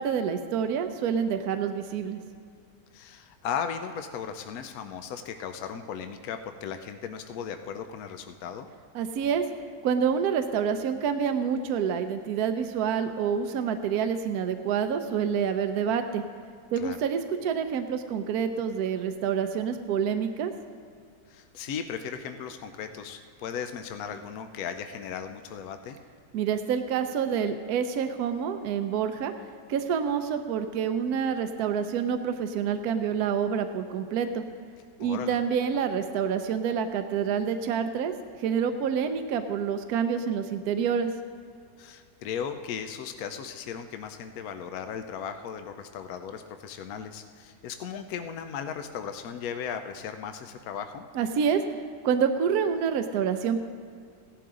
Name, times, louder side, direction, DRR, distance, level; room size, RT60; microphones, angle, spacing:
voice 1, 0.0-2.2 8.9-9.4 9.8-16.2 16.7-20.5 26.3-29.3 29.7-34.4 35.0-38.1 38.4-41.1 51.1-51.6 52.0-53.6, right 7 dB, 75° right, 8 dB, 1.1 m, -27 dB
voice 2, 2.9-8.7 16.8-17.0 21.3-26.0 35.0-35.4 41.8-51.1, left 7 dB, 70° left, 7 dB, 1.1 m, -36 dB
16.0 x 11.5 x 3.7 m, 2.3 s
omnidirectional pair, 1.7 m